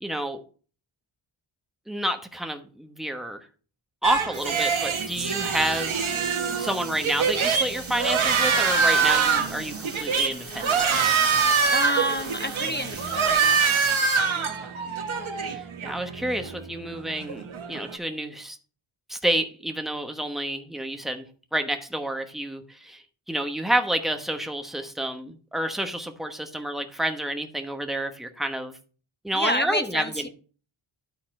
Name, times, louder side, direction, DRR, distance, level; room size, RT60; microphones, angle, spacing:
voice 1, 0.0-0.4 1.9-3.4 4.0-6.1 6.6-10.8 14.3-14.5 15.4-18.6 19.1-21.2 21.5-28.7 29.2-30.3, right 1 dB, ahead, 1.1 m, -29 dB
sound 1, 4.0-18.0, right 5 dB, 70° right, 1.4 m, -25 dB
sound 2, 4.3-13.9, right 3 dB, 25° right, 1.9 m, -41 dB
voice 2, 11.7-13.7 29.3-30.3, equal, 20° left, 0.6 m, -28 dB
12.0 x 4.2 x 4.4 m
wide cardioid pair, 85°, 50 cm